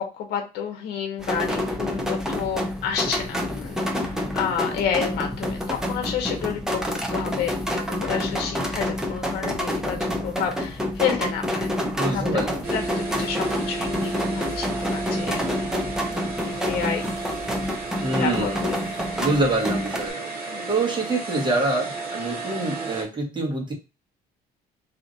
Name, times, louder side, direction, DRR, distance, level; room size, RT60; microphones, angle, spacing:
voice 1, 0.1-11.7 12.1-12.2 12.5-15.8 16.4-17.1 18.1-18.5 20.4-20.7, left 7 dB, 75° left, 4 dB, 0.8 m, -30 dB
sound 1, 1.2-20.1, left 1 dB, 5° right, 0.7 m, -28 dB
voice 2, 12.0-12.6 18.0-18.8 19.2-23.7, right 2 dB, 25° right, 0 dB, 1.3 m, -26 dB
sound 2, 12.6-23.0, right 3 dB, 60° right, 1.4 m, -33 dB
2.8 x 2.5 x 3.8 m, 0.28 s
cardioid pair, 110°, 17 cm